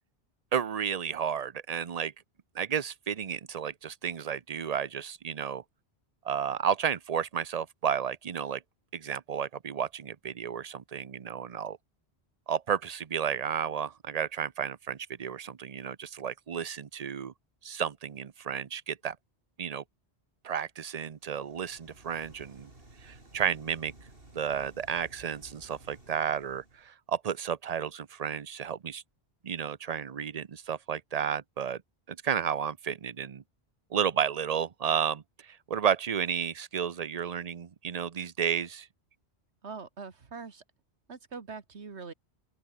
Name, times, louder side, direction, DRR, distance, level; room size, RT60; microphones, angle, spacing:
voice 1, 0.5-2.1 2.5-5.6 6.2-8.6 8.9-11.8 12.5-17.3 17.6-19.2 19.6-19.8 20.4-22.7 23.0-23.9 24.3-29.0 29.4-31.8 32.1-33.4 33.9-38.9, right 8 dB, 40° right, 0.8 m, -32 dB
sound 1, 21.2-26.9, right 2 dB, 60° right, 4.8 m, -54 dB
voice 2, 39.6-40.6 41.1-42.1, right 5 dB, 90° right, 2.1 m, -42 dB
open air
omnidirectional pair, 1.1 m